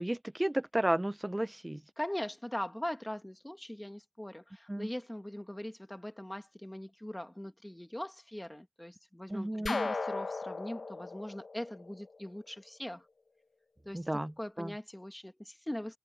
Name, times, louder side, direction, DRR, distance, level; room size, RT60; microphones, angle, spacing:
voice 1, 0.0-1.8 4.7-4.9 9.3-9.9 13.9-14.7, right 1 dB, 15° right, 0.5 m, -33 dB
voice 2, 2.0-13.1 13.9-14.1 14.4-16.0, left 1 dB, 10° left, 2.0 m, -41 dB
sound 1, 9.7-12.5, left 3 dB, 65° left, 1.0 m, -37 dB
wide cardioid pair, 75°, 0 cm